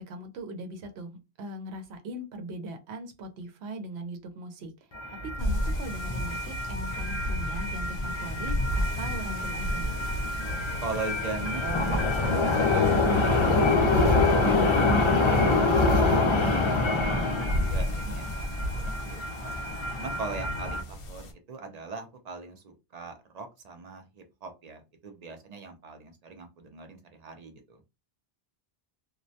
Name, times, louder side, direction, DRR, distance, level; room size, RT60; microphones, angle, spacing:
voice 1, 0.0-4.7 5.4-9.9, right 1 dB, 80° right, 0.8 m, -40 dB
sound 1, 4.9-20.8, left 2 dB, 45° left, 0.4 m, -26 dB
sound 2, 5.4-21.3, equal, 65° left, 0.8 m, -35 dB
voice 2, 10.8-14.5 14.9-15.7 16.1-16.6 17.1-17.2 17.6-19.5 19.9-27.8, right 3 dB, 50° right, 0.5 m, -40 dB
2.2 x 2.1 x 2.6 m
omnidirectional pair, 1.1 m